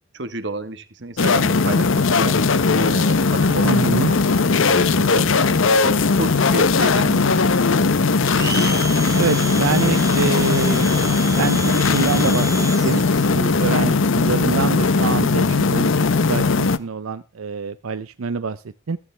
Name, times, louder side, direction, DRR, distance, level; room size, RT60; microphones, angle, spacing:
voice 1, 0.1-2.4 2.7-5.3 5.6-7.4, right 2 dB, 55° right, 11 dB, 1.4 m, -31 dB
sound 1, 1.2-16.8, left 4 dB, 70° left, 0.8 m, -18 dB
voice 2, 3.6-4.1 9.1-11.0 11.4-15.9 16.2-19.0, right 5 dB, 85° right, 13 dB, 0.6 m, -26 dB
Domestic sounds home sounds, 8.2-13.3, right 4 dB, 15° right, 0.8 m, -31 dB
14.5 x 14.5 x 3.3 m, 0.32 s
head